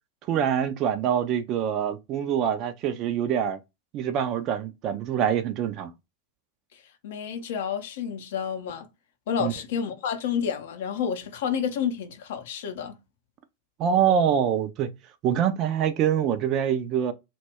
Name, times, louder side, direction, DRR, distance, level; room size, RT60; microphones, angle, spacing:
voice 1, 0.3-3.6 3.9-5.9 9.4-9.5 13.8-14.9 15.2-17.1, right 8 dB, 35° right, 0.4 m, -25 dB
voice 2, 7.0-8.9 9.3-13.0, left 7 dB, 55° left, 0.5 m, -30 dB
2.2 x 2.0 x 3.4 m
figure-of-eight pair, 90°, 0 cm